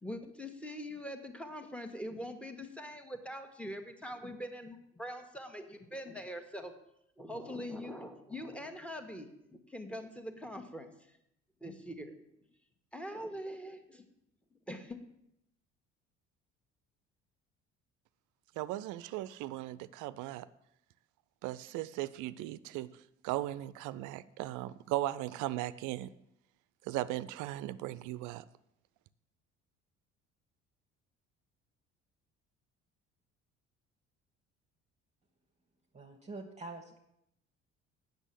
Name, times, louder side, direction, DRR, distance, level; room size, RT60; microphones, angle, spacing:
voice 1, 0.0-6.7 7.2-10.9 11.6-12.1 12.9-14.0 14.7-15.0, equal, 5° left, 5 dB, 1.5 m, -43 dB
voice 2, 18.6-20.5 21.4-22.9 23.2-26.1 26.9-28.4, right 15 dB, 60° right, 16 dB, 0.5 m, -37 dB
voice 3, 35.9-37.0, right 2 dB, 20° right, 2 dB, 1.4 m, -45 dB
8.1 x 6.8 x 7.5 m, 0.80 s
hypercardioid pair, 55°, 35 cm